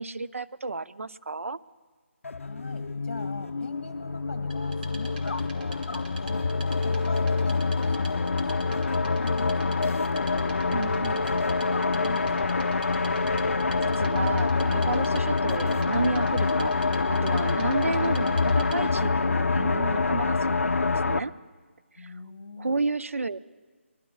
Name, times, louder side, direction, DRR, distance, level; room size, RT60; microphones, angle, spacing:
voice 1, 0.0-1.6 10.7-11.2 13.8-21.3 22.0-22.1 22.6-23.4, right 3 dB, 85° right, 14 dB, 0.6 m, -32 dB
sound 1, 2.2-21.2, left 4 dB, 80° left, 0.6 m, -26 dB
voice 2, 2.4-10.4 10.7-12.7 22.0-22.8, left 3 dB, 55° left, 3 dB, 2.0 m, -43 dB
Wood, 4.5-19.0, right 2 dB, 40° right, 2.6 m, -46 dB
23.0 x 22.5 x 2.4 m, 1.4 s
figure-of-eight pair, 170°, 7 cm